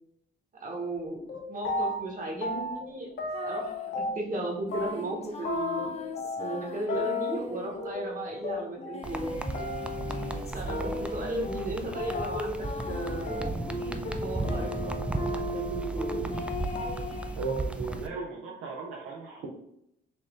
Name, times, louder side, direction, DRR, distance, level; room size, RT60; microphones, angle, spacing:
voice 1, 0.6-1.2 1.5-3.1 3.3-6.0 6.3-9.3 10.5-13.6 14.2-15.0 15.3-16.3, right 2 dB, 40° right, 1 dB, 1.3 m, -35 dB
sound 1, 0.9-1.0 1.3-2.1 2.4-4.4 4.7-16.5 16.8-17.2 17.5-17.9, left 1 dB, 60° left, 1.0 m, -34 dB
sound 2, 3.3-3.9 4.7-7.9 8.8-11.3 11.9-15.0 16.3-17.4, left 5 dB, 30° left, 0.6 m, -41 dB
sound 3, 9.0-18.1, right 2 dB, 5° right, 0.3 m, -35 dB
voice 2, 17.4-19.5, right 4 dB, 90° right, -2 dB, 0.7 m, -36 dB
4.2 x 2.5 x 3.6 m, 0.77 s
cardioid pair, 90°, 20 cm